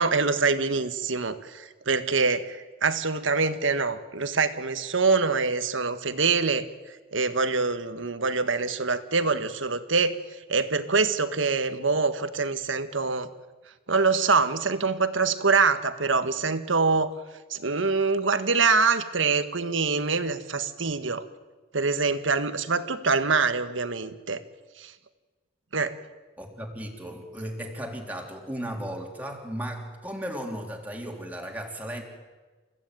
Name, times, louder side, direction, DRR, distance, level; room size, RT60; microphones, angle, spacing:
voice 1, 0.0-6.7 7.1-10.2 10.5-13.3 13.9-17.1 17.5-21.2 21.7-24.4 24.8-24.9 25.7-26.0, right 4 dB, 80° right, 10 dB, 1.6 m, -25 dB
voice 2, 26.4-32.0, equal, 10° right, 1 dB, 3.3 m, -35 dB
29.0 x 15.5 x 9.3 m, 1.3 s
head